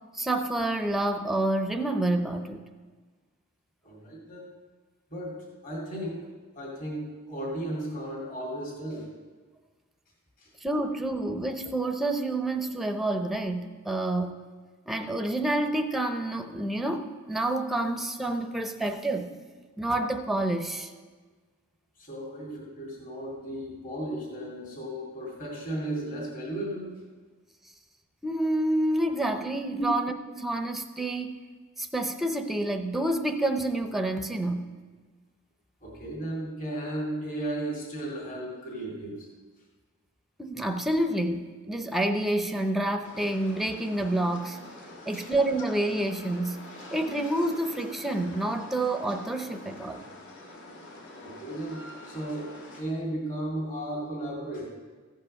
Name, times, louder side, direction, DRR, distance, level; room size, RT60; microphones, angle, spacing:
voice 1, 0.1-2.6 10.6-14.4 14.9-19.3 19.8-20.9 28.2-31.4 31.8-34.7 40.4-44.6 45.1-46.6 46.9-50.1, right 1 dB, ahead, 6 dB, 0.6 m, -28 dB
voice 2, 3.8-4.5 5.1-9.1 10.4-10.5 22.0-27.0 29.7-29.9 35.8-39.3 45.0-45.3 51.2-54.7, right 1 dB, 40° left, -4 dB, 2.3 m, -35 dB
sound 1, 43.0-52.8, left 2 dB, 60° left, 1.8 m, -46 dB
15.0 x 5.4 x 6.4 m, 1.4 s
head